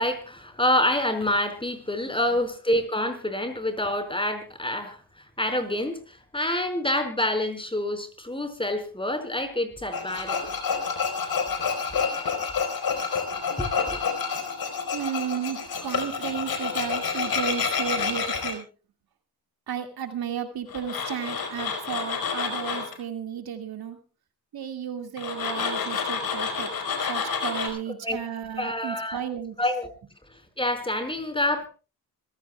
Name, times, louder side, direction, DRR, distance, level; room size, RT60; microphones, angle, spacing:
voice 1, 0.0-10.5 13.6-14.0 28.0-28.2 28.6-29.2 29.6-29.9 30.6-31.7, left 1 dB, 15° left, 7 dB, 4.9 m, -27 dB
Tools, 9.9-18.5 20.7-22.9 25.2-27.7, left 5 dB, 70° left, 4.6 m, -29 dB
voice 2, 14.9-18.7 19.7-24.0 24.5-26.7 27.0-29.6, right 8 dB, 75° right, 6 dB, 2.3 m, -33 dB
26.0 x 16.0 x 2.3 m, 0.34 s
cardioid pair, 75°, 37 cm